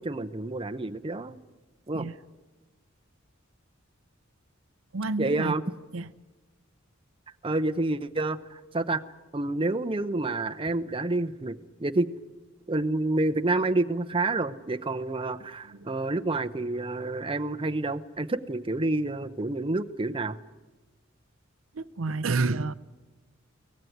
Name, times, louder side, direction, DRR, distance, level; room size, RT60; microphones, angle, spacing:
voice 1, 0.0-1.4 1.9-2.0 5.2-5.6 7.4-9.0 9.3-12.1 12.7-20.4, right 2 dB, 25° right, 8 dB, 0.8 m, -28 dB
voice 2, 4.9-5.6 5.9-6.1 15.6-16.0 21.7-22.7, right 3 dB, 75° right, 14 dB, 0.7 m, -29 dB
23.5 x 18.0 x 9.3 m, 1.2 s
head